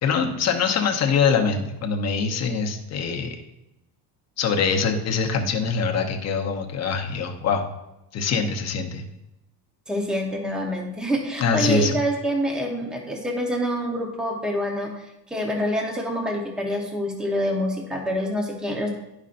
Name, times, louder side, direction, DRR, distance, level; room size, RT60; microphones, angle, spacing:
voice 1, 0.0-3.4 4.4-7.6 8.1-9.0 11.4-12.0, left 5 dB, 40° left, 3 dB, 0.9 m, -23 dB
voice 2, 9.9-18.9, equal, ahead, 1 dB, 0.9 m, -26 dB
11.0 x 5.4 x 2.5 m, 0.91 s
cardioid pair, 155°, 41 cm